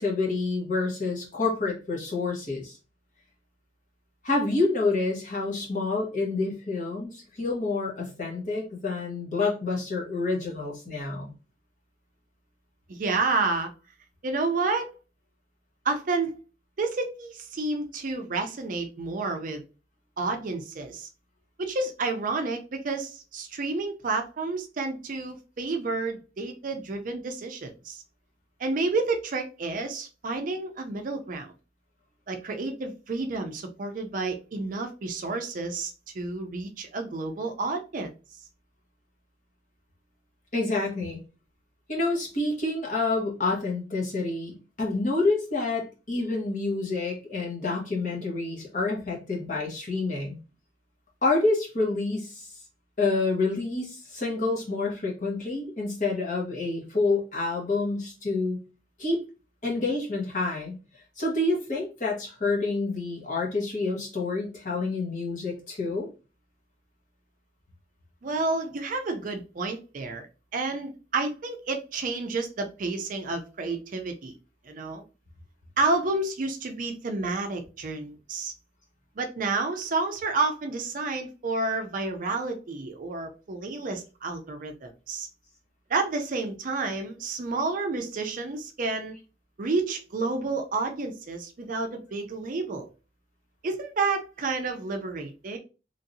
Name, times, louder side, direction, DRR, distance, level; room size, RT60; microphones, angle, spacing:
voice 1, 0.0-2.8 4.2-11.3 40.5-41.2 41.9-50.4 51.2-52.5 53.0-58.6 59.0-59.2 59.6-60.7 61.2-66.1, left 3 dB, 45° left, 1.1 m, -28 dB
voice 2, 12.9-13.7 14.2-14.9 15.8-16.3 16.8-19.6 20.2-21.1 21.6-28.0 28.6-31.5 32.3-38.1 68.2-70.2 70.5-74.3 74.7-75.0 75.8-78.5 79.2-85.3 85.9-89.1 89.6-92.9 93.6-95.6, right 3 dB, 45° right, 0.4 m, -30 dB
3.1 x 2.7 x 2.6 m
head